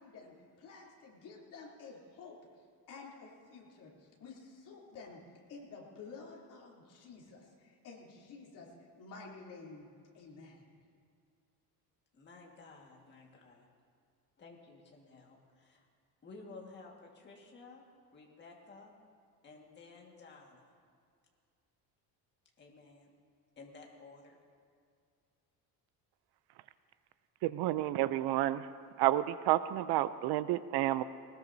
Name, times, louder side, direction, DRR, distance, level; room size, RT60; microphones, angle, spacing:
voice 1, 0.0-2.3 2.9-5.2 5.5-9.9 10.1-10.7, left 4 dB, 50° left, -4 dB, 3.3 m, -51 dB
voice 2, 12.1-13.7 14.4-15.9 16.2-17.8 18.1-18.9 19.4-20.7 22.6-23.1 23.6-24.4, left 3 dB, 25° left, -1 dB, 1.8 m, -54 dB
voice 3, 27.4-28.7 29.0-31.0, right 14 dB, 70° right, 14 dB, 0.6 m, -30 dB
20.5 x 19.5 x 2.7 m, 2.2 s
cardioid pair, 165°, 41 cm